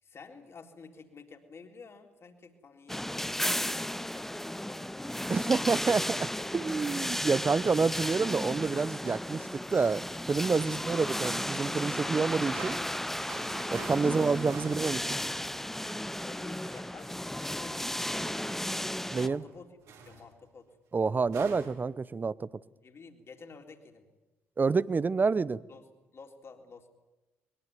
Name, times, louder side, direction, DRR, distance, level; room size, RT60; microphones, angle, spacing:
voice 1, 0.0-5.9 10.6-10.9 11.5-11.7 14.1-14.8 16.2-18.9 19.2-19.7 20.0-20.7 22.8-24.1 25.7-25.9 26.1-26.9, left 4 dB, 45° left, 4 dB, 3.8 m, -51 dB
sound 1, 2.9-19.3, left 1 dB, 5° left, 0.8 m, -34 dB
voice 2, 5.3-6.2 6.5-12.7 13.7-15.0 19.1-19.4 20.9-22.5 24.6-25.6, right 4 dB, 30° right, 20 dB, 0.9 m, -28 dB
sound 2, 12.5-16.2 16.7-16.9 19.0-19.6 19.8-20.3 21.2-21.8, right 5 dB, 65° right, 4.6 m, -47 dB
22.5 x 22.0 x 9.5 m, 1.1 s
figure-of-eight pair, 45°, 6 cm